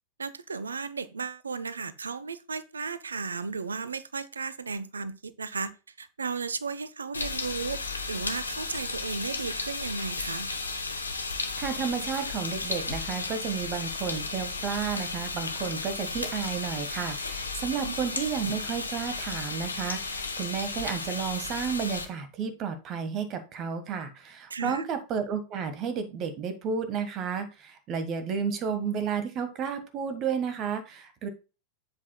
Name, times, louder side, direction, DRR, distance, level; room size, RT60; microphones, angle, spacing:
voice 1, 0.2-10.5 17.8-18.0 24.5-24.8, right 5 dB, 75° right, 0.7 m, -35 dB
sound 1, 7.1-22.0, left 3 dB, 80° left, 1.1 m, -34 dB
voice 2, 11.6-31.3, right 6 dB, 35° right, 1.4 m, -32 dB
9.8 x 7.8 x 2.3 m
figure-of-eight pair, 90°, 0 cm